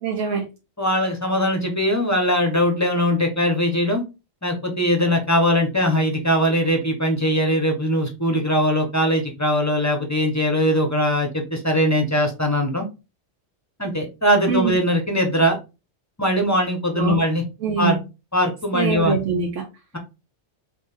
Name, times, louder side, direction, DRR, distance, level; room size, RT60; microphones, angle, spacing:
voice 1, 0.0-0.5 14.5-14.7 16.9-17.2 17.6-18.0 18.7-19.7, right 6 dB, 80° right, 1.1 m, -23 dB
voice 2, 0.8-4.0 4.4-12.9 13.8-15.6 16.2-17.4 17.8-18.0 18.3-19.2, equal, 15° left, 0.9 m, -21 dB
3.9 x 3.4 x 3.5 m
omnidirectional pair, 1.3 m